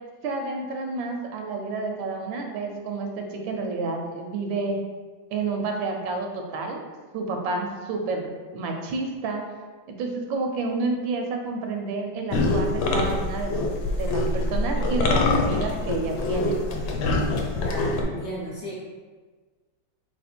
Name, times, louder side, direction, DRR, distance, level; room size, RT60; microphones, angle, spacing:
voice 1, 0.2-4.8 5.3-6.8 7.1-8.3 8.5-9.4 9.9-13.7 13.9-16.6, right 3 dB, 80° right, 3 dB, 1.3 m, -29 dB
sound 1, 12.3-18.0, left 2 dB, 80° left, 1.3 m, -24 dB
voice 2, 17.6-18.8, equal, 55° left, -5 dB, 1.1 m, -34 dB
3.3 x 3.0 x 4.3 m, 1.4 s
omnidirectional pair, 2.1 m